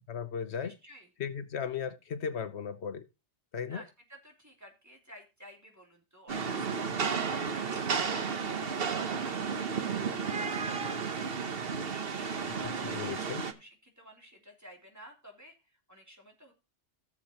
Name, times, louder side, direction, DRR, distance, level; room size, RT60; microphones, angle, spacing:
voice 1, 0.1-0.7 1.2-3.1 3.5-3.8 12.8-13.4, left 7 dB, 70° left, 1.1 m, -36 dB
voice 2, 0.6-1.1 3.7-9.5 9.8-11.4 11.6-16.5, equal, 15° right, 3.0 m, -53 dB
Rain, 6.3-13.5, right 5 dB, 60° right, 1.2 m, -33 dB
15.0 x 7.1 x 2.9 m
omnidirectional pair, 1.2 m